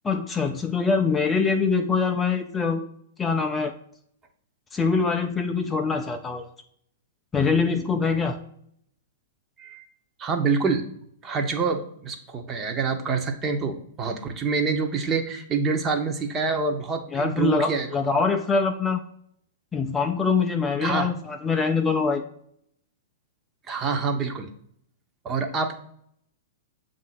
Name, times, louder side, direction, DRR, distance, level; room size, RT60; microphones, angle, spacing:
voice 1, 0.0-2.8 3.2-3.7 4.7-6.5 7.3-8.4 17.1-19.0 19.7-22.2, left 4 dB, 15° left, 5 dB, 0.5 m, -24 dB
voice 2, 10.2-10.8 11.2-17.9 20.8-21.1 23.7-24.5 25.2-25.7, right 4 dB, 25° right, 5 dB, 0.9 m, -26 dB
7.2 x 2.6 x 5.8 m, 0.68 s
hypercardioid pair, 110°, 0 cm